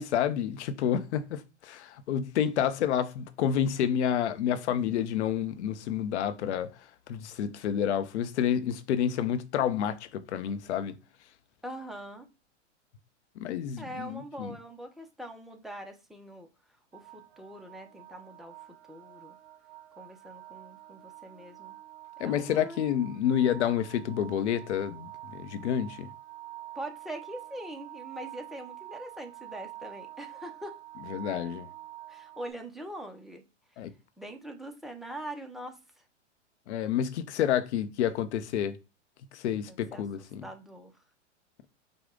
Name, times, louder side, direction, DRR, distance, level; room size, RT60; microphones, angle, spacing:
voice 1, 0.0-6.7 7.1-11.0 13.4-14.5 22.2-26.1 31.1-31.7 33.8-33.9 36.7-38.8 39.3-40.4, left 9 dB, 65° left, 0.7 m, -29 dB
voice 2, 11.6-12.3 13.8-16.5 16.9-18.6 18.9-19.4 20.0-21.7 22.2-22.8 26.7-30.8 32.1-33.4 34.2-35.8 39.7-40.0 40.4-40.9, right 1 dB, ahead, 0.6 m, -42 dB
sound 1, 16.9-32.5, right 15 dB, 60° right, 1.1 m, -47 dB
5.2 x 2.3 x 3.7 m
hypercardioid pair, 115°, 36 cm